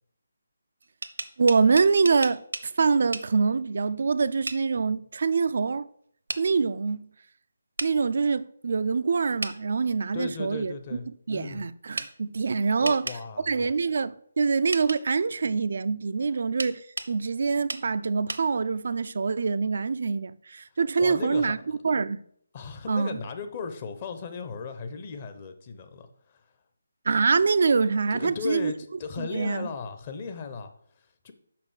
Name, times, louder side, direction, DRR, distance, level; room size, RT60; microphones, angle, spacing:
sound 1, 0.8-2.7 3.1-3.3 4.5-4.6 6.3-6.4 7.8-7.9 9.4-9.6 12.0-12.1 12.8-13.2 14.7-15.0 16.6-17.1 17.7-17.8 18.3-18.4, right 2 dB, 75° right, 0.8 m, -33 dB
voice 1, 1.4-5.9 6.4-7.1 7.8-10.7 11.3-13.1 13.5-16.8 17.1-21.6 21.8-22.2 22.9-23.2 27.1-28.7 29.2-29.7, right 4 dB, 55° right, 0.4 m, -25 dB
voice 2, 10.1-11.6 12.8-13.7 21.0-21.8 22.5-26.4 28.1-31.3, left 5 dB, 30° left, 0.9 m, -36 dB
5.9 x 5.4 x 6.3 m
figure-of-eight pair, 150°, 0 cm